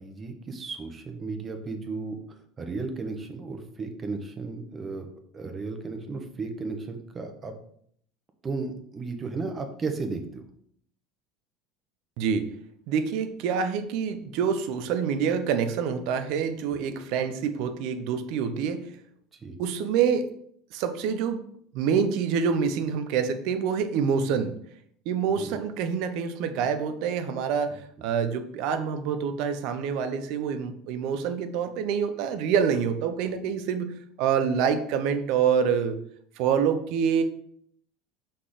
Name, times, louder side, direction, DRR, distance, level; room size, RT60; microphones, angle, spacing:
voice 1, 0.0-2.2 2.6-5.1 5.3-7.5 8.4-10.4 19.4-19.6 25.4-25.6, right 4 dB, 30° right, 5 dB, 1.3 m, -34 dB
voice 2, 12.2-12.5 12.9-18.8 19.6-20.3 20.7-21.4 21.7-24.5 25.1-36.0 36.4-37.2, right 7 dB, 65° right, 9 dB, 0.9 m, -26 dB
5.4 x 4.4 x 5.1 m, 0.65 s
supercardioid pair, 95°, 0 cm